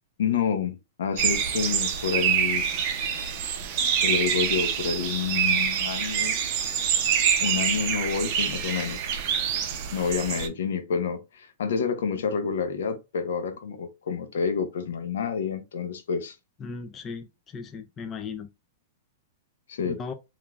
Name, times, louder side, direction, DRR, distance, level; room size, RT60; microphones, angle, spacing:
voice 1, 0.2-2.6 4.0-6.4 7.4-9.1 9.9-16.3 19.7-20.0, left 6 dB, 80° left, 0.7 m, -28 dB
sound 1, 1.2-10.5, right 8 dB, 40° right, 0.5 m, -26 dB
voice 2, 16.6-18.5 19.8-20.1, left 5 dB, 20° left, 0.3 m, -37 dB
3.0 x 2.5 x 2.3 m
hypercardioid pair, 155°, 0 cm